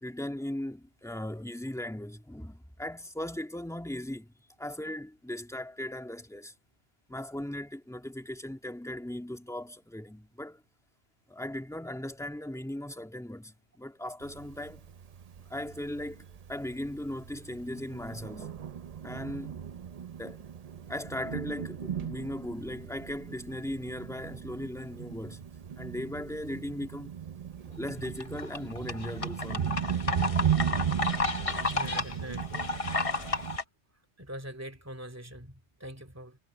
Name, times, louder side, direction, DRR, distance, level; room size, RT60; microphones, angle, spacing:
voice 1, 0.0-4.3 4.6-6.5 7.1-10.6 11.3-14.8 15.5-18.6 19.0-19.6 20.2-20.5 20.9-25.5 25.8-27.1 27.7-30.0, left 1 dB, 5° left, 1.8 m, -38 dB
Thunder, 14.2-33.6, right 8 dB, 45° right, 0.6 m, -36 dB
sound 1, 27.9-33.6, left 3 dB, 30° left, 1.1 m, -32 dB
voice 2, 31.7-32.7 34.2-36.4, equal, 15° right, 2.6 m, -43 dB
omnidirectional pair, 1.2 m